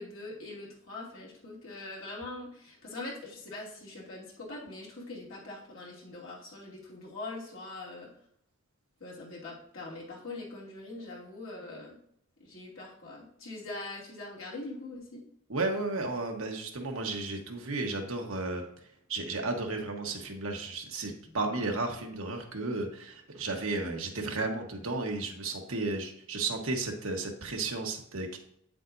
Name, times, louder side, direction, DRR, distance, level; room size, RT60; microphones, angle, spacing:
voice 1, 0.0-8.1 9.0-12.0 12.4-15.2 21.2-21.3, left 2 dB, 70° left, -5 dB, 2.7 m, -42 dB
voice 2, 15.5-18.6 19.1-28.4, right 3 dB, 75° right, 2 dB, 1.3 m, -33 dB
8.8 x 7.5 x 2.7 m, 0.70 s
head